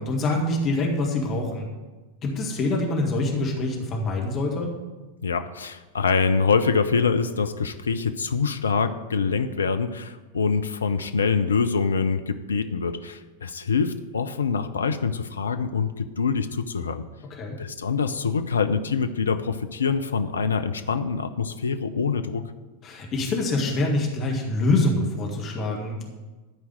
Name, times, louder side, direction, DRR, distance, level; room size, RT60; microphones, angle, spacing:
voice 1, 0.0-1.7 2.2-4.7 17.3-17.6 22.8-26.0, left 2 dB, 30° left, 0 dB, 1.8 m, -25 dB
voice 2, 5.2-17.0 17.6-22.4, left 5 dB, 70° left, 9 dB, 0.5 m, -25 dB
12.0 x 4.6 x 7.6 m, 1.2 s
figure-of-eight pair, 90°, 0 cm